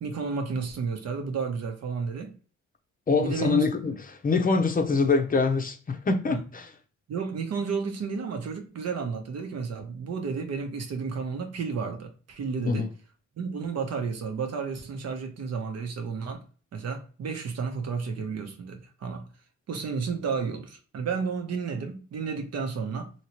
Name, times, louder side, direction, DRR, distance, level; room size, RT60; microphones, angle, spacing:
voice 1, 0.0-2.4 3.2-3.7 6.3-6.4 7.1-12.9 13.4-16.4 16.7-19.3 19.7-23.1, right 5 dB, 55° right, 0.9 m, -32 dB
voice 2, 3.1-6.7 12.7-12.9, left 4 dB, 30° left, 0.7 m, -24 dB
2.9 x 2.9 x 2.9 m
cardioid pair, 90°, 30 cm